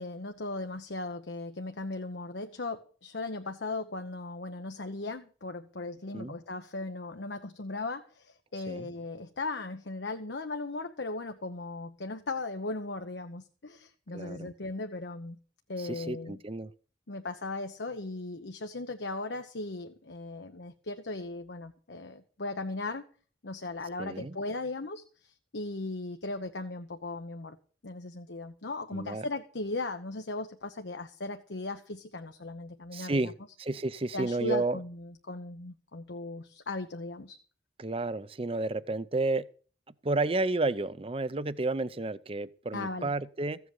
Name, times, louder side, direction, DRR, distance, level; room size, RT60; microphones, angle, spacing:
voice 1, 0.0-15.4 15.7-16.4 17.1-23.1 23.4-27.6 27.8-33.3 34.1-37.4 42.7-43.1, left 2 dB, 80° left, 1.0 m, -37 dB
voice 2, 14.1-14.5 15.8-16.7 24.0-24.4 28.9-29.3 32.9-33.3 33.6-34.8 37.8-39.4 40.0-43.6, right 2 dB, 30° right, 0.6 m, -31 dB
15.5 x 8.0 x 7.0 m
head